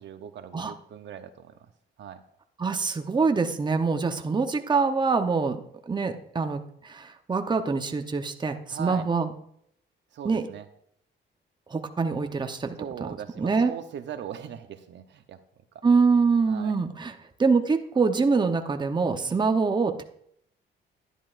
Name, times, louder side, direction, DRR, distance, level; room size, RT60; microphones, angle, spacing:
voice 1, 0.0-1.7 2.0-2.2 8.7-9.1 10.1-10.7 12.8-15.4 16.5-16.8 19.1-19.4, right 9 dB, 65° right, 8 dB, 0.8 m, -40 dB
voice 2, 2.6-9.3 10.2-10.4 11.7-13.1 13.4-13.7 15.8-17.1 17.4-20.0, right 4 dB, 20° right, 6 dB, 0.8 m, -25 dB
11.0 x 10.0 x 2.5 m, 0.68 s
cardioid pair, 90°, 20 cm